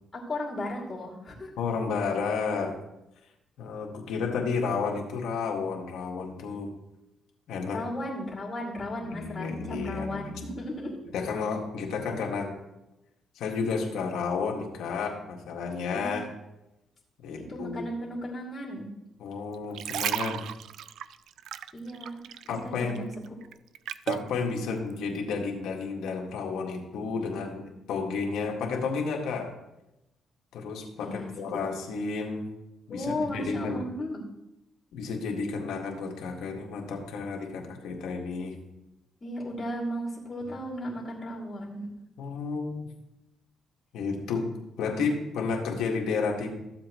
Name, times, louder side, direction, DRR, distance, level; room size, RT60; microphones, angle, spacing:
voice 1, 0.1-1.5 7.7-11.0 15.9-16.2 17.5-18.9 21.7-22.2 22.6-23.1 31.0-31.3 32.9-34.2 39.2-41.9, left 1 dB, 30° left, -3 dB, 2.4 m, -35 dB
voice 2, 1.6-2.8 3.6-6.7 7.5-7.8 9.0-10.4 11.1-12.6 13.4-16.3 17.2-17.9 19.2-20.4 22.5-23.0 24.1-29.5 30.5-32.5 32.9-33.9 34.9-38.6 42.2-42.9 43.9-44.5 44.8-46.5, left 4 dB, 85° left, 0 dB, 1.9 m, -31 dB
sound 1, 19.5-22.6 22.9-24.3 24.9-25.1, right 10 dB, 80° right, 0.3 m, -34 dB
14.0 x 7.7 x 3.1 m, 0.93 s
cardioid pair, 90°, 0 cm